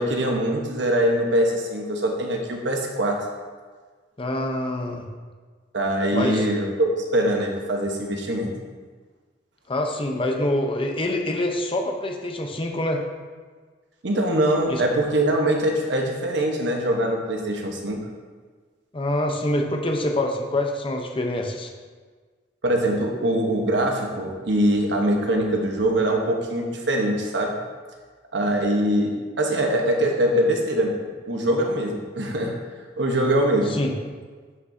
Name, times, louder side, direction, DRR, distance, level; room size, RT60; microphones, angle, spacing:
voice 1, 0.0-3.2 5.7-8.5 14.0-18.0 22.6-27.5 28.3-32.5 33.0-33.7, right 1 dB, 75° right, 1 dB, 1.1 m, -23 dB
voice 2, 4.2-5.1 6.1-6.5 9.7-13.0 14.7-14.8 18.9-21.7 33.5-33.9, left 1 dB, 30° left, 2 dB, 0.8 m, -25 dB
9.3 x 6.0 x 2.7 m, 1.5 s
head